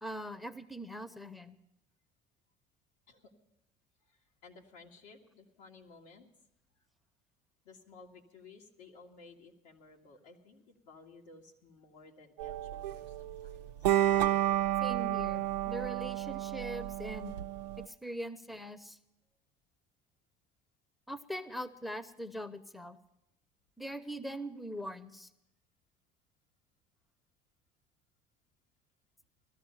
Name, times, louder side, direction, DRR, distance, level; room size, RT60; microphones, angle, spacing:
voice 1, 0.0-1.6 14.8-17.3 17.8-19.0 21.1-23.0 23.8-25.3, equal, ahead, 13 dB, 0.9 m, -42 dB
voice 2, 4.0-6.3 7.6-13.7, left 4 dB, 80° left, 0 dB, 2.0 m, -56 dB
sound 1, 12.4-17.9, right 13 dB, 85° right, 0.5 m, -31 dB
16.5 x 13.0 x 5.7 m, 0.84 s
hypercardioid pair, 65°, 20 cm